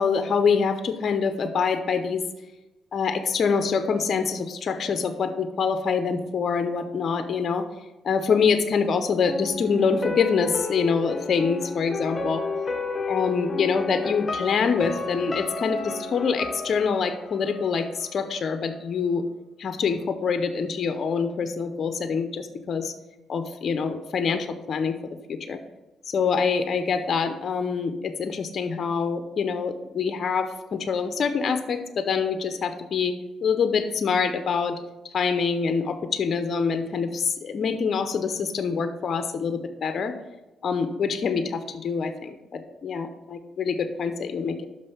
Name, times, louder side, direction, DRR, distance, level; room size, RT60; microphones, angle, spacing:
voice 1, 0.0-2.2 2.9-7.7 8.0-12.4 13.1-19.2 19.6-22.9 23.3-25.0 25.3-25.6 26.1-33.2 33.4-34.8 35.1-40.1 40.6-44.7, left 5 dB, 50° left, 9 dB, 0.6 m, -25 dB
sound 1, 9.2-18.2 18.5-18.6, left 4 dB, 25° left, 0.9 m, -32 dB
6.1 x 5.4 x 5.4 m, 1.1 s
cardioid pair, 90°, 0 cm